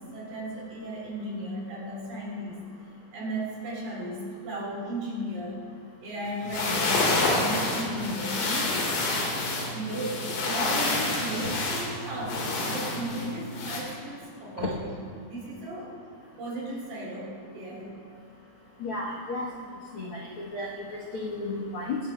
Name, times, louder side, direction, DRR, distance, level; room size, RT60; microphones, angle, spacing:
voice 1, 0.1-2.6 3.1-5.6 6.0-8.8 9.7-15.9 16.4-17.9, right 1 dB, 85° right, -4 dB, 5.6 m, -35 dB
sound 1, 6.3-13.8, left 2 dB, 65° left, 3.3 m, -28 dB
voice 2, 18.8-19.5 19.9-22.0, left 3 dB, 85° left, -4 dB, 1.2 m, -33 dB
25.0 x 10.5 x 2.3 m, 2.2 s
omnidirectional pair, 4.4 m